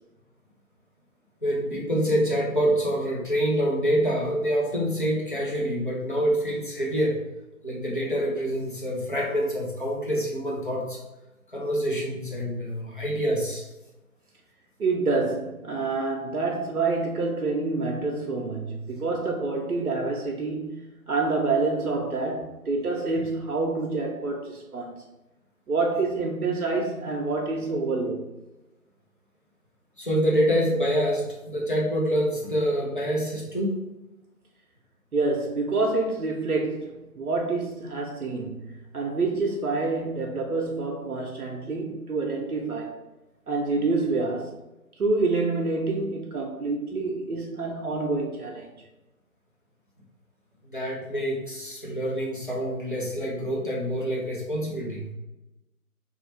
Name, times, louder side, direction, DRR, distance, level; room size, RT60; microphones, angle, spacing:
voice 1, 1.4-7.2 7.6-11.0 11.5-13.7 30.0-33.8 50.6-55.1, equal, 35° left, 0.7 m, -26 dB
voice 2, 14.8-24.9 25.7-28.3 35.1-43.0 43.5-44.5 45.0-48.7, right 3 dB, 80° right, 0.7 m, -27 dB
3.1 x 2.4 x 3.1 m
figure-of-eight pair, 160°, 44 cm